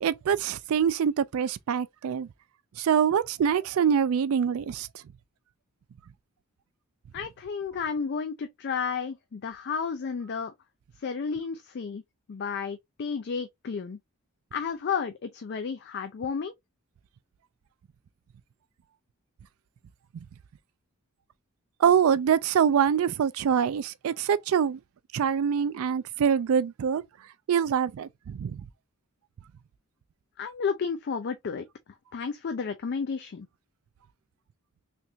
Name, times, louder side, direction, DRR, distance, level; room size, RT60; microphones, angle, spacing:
voice 1, 0.0-2.3 2.8-4.9 21.8-24.8 25.1-27.0 27.5-28.6, right 7 dB, 70° right, 0.3 m, -24 dB
voice 2, 7.1-10.5 11.0-12.0 12.3-14.0 14.5-16.5 30.4-31.7 32.1-33.5, left 6 dB, 50° left, 0.4 m, -32 dB
3.4 x 2.9 x 2.6 m
head